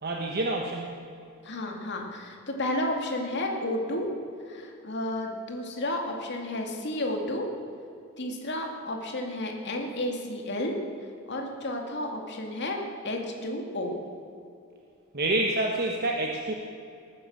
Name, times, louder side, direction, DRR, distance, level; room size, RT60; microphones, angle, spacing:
voice 1, 0.0-0.9 15.1-16.5, right 2 dB, 45° right, 1 dB, 1.2 m, -27 dB
voice 2, 1.4-4.1 4.5-7.5 8.2-10.8 11.3-12.8 13.0-13.9, left 1 dB, 55° left, 2 dB, 2.3 m, -32 dB
19.0 x 9.2 x 7.3 m, 2.6 s
head